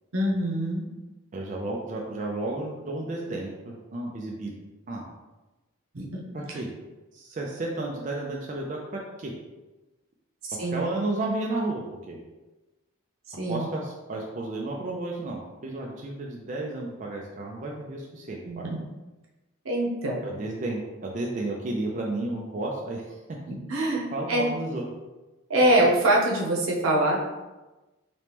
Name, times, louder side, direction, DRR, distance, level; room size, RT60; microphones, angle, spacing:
voice 1, 0.1-0.8 5.9-6.2 6.5-6.6 10.6-10.8 13.4-13.6 18.4-18.8 19.6-20.3 23.5-24.5 25.5-27.2, right 1 dB, 85° right, -1 dB, 0.8 m, -24 dB
voice 2, 1.3-4.5 4.9-5.0 6.3-6.7 7.1-9.3 10.7-11.8 12.1-12.2 13.5-18.7 20.2-23.1 24.1-24.9, right 2 dB, 35° right, -1 dB, 0.4 m, -32 dB
2.9 x 2.9 x 3.4 m, 1.1 s
head